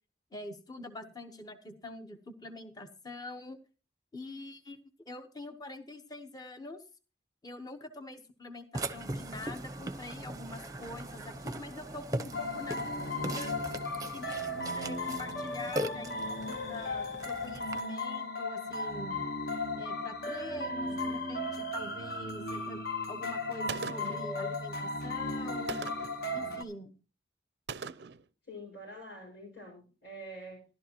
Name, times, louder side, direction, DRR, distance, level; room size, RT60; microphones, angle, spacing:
voice 1, 0.3-3.6 4.1-4.8 5.0-6.8 7.4-13.5 14.1-19.2 19.8-22.8 23.1-25.9 26.3-27.0, left 2 dB, 20° left, 7 dB, 1.0 m, -45 dB
Burping eructation, 8.7-17.8, right 1 dB, 20° right, 0.7 m, -40 dB
sound 1, 12.3-26.6, left 2 dB, 55° left, 1.3 m, -36 dB
Gunshot gunfire, 23.7-24.3 25.7-26.2 27.7-28.2, right 6 dB, 60° right, 0.4 m, -40 dB
voice 2, 28.5-30.7, equal, 90° left, -3 dB, 5.7 m, -46 dB
14.0 x 12.0 x 2.9 m, 0.34 s
head